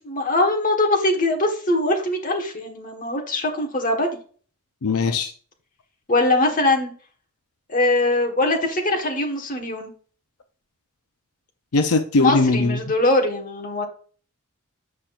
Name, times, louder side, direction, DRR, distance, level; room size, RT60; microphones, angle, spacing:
voice 1, 0.0-4.2 6.1-6.9 7.7-9.9 12.2-13.9, left 2 dB, 35° left, 2 dB, 1.4 m, -22 dB
voice 2, 4.8-5.3 11.7-12.8, left 3 dB, 80° left, 7 dB, 0.7 m, -20 dB
8.4 x 5.8 x 2.5 m, 0.42 s
head